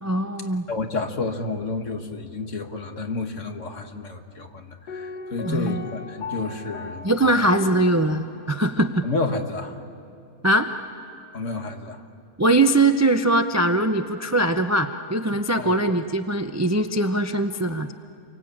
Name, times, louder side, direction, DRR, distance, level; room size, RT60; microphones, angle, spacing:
voice 1, 0.0-0.6 5.4-5.8 7.0-9.0 10.4-10.7 12.4-17.9, right 2 dB, 25° right, 8 dB, 0.3 m, -21 dB
voice 2, 0.7-7.4 9.0-9.8 11.3-12.0 15.6-15.8, left 3 dB, 50° left, 5 dB, 1.9 m, -30 dB
Piano, 4.9-8.6 8.9-9.0, left 5 dB, 85° left, 1.8 m, -38 dB
29.0 x 24.0 x 8.7 m, 2.6 s
omnidirectional pair, 1.7 m